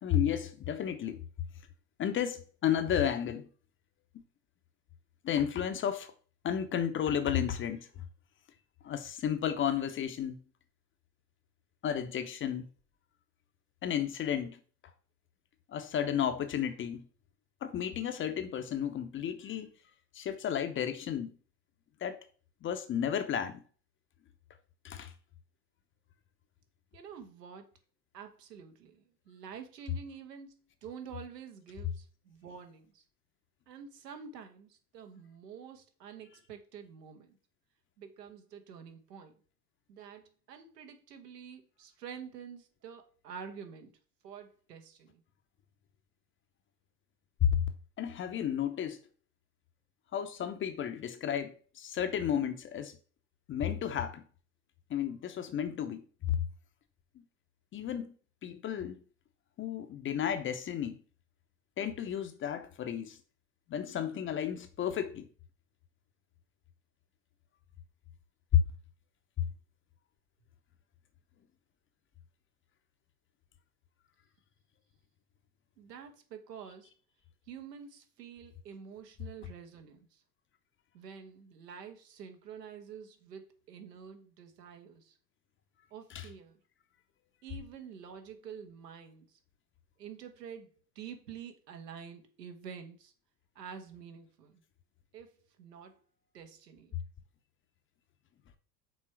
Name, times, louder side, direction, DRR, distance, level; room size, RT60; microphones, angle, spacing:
voice 1, 0.0-1.2 2.0-3.5 5.2-6.1 6.4-7.9 8.8-10.4 11.8-12.7 13.8-14.6 15.7-17.0 17.6-19.7 20.1-21.3 22.0-22.2 22.6-23.6 24.8-25.1 47.4-47.6 48.0-49.0 50.1-52.9 53.5-54.2 54.9-56.4 57.7-58.1 58.4-59.0 59.6-61.0 61.8-63.2 63.7-65.3 68.5-68.6 86.1-86.3, left 9 dB, 25° left, 0.7 m, -32 dB
voice 2, 26.9-27.7 28.1-33.0 33.7-37.4 38.0-39.4 39.9-43.9 44.2-45.2 75.8-76.9 77.5-80.2 80.9-85.2 85.9-86.6 87.4-89.4 90.0-93.1 93.5-94.6 95.1-96.0 96.3-97.0, right 7 dB, 75° right, 1.3 m, -48 dB
6.3 x 3.7 x 4.5 m
figure-of-eight pair, 80°, 49 cm